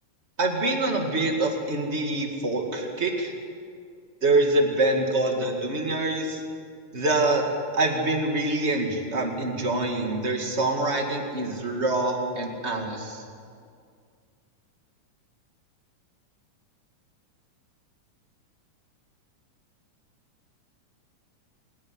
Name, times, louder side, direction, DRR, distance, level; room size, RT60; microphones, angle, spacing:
voice 1, 0.4-3.3 4.2-6.4 6.9-7.4 7.7-13.2, right 2 dB, 25° right, 2 dB, 1.8 m, -25 dB
27.0 x 10.5 x 9.7 m, 2.2 s
omnidirectional pair, 3.7 m